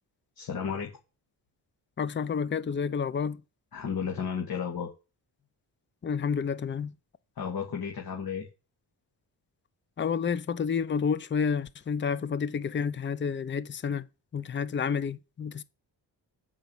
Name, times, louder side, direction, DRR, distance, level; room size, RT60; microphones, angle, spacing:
voice 1, 0.4-0.9 3.7-4.9 7.4-8.5, left 7 dB, 55° left, 2.2 m, -33 dB
voice 2, 2.0-3.4 6.0-6.9 10.0-14.1 14.3-15.6, left 6 dB, 25° left, 0.6 m, -30 dB
8.1 x 5.3 x 7.3 m
cardioid pair, 120°, 42 cm